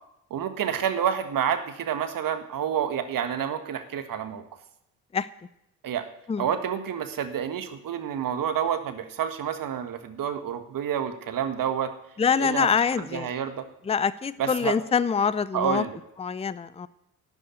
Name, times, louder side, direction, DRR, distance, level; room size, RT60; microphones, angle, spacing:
voice 1, 0.3-4.4 5.8-6.1 6.4-11.9 12.4-13.6 14.4-14.8 15.5-16.0, right 8 dB, 50° right, 9 dB, 1.6 m, -29 dB
voice 2, 12.2-13.3 13.9-15.8 16.2-16.9, left 6 dB, 15° left, 17 dB, 0.6 m, -25 dB
12.5 x 8.1 x 9.2 m, 0.81 s
hypercardioid pair, 50°, 41 cm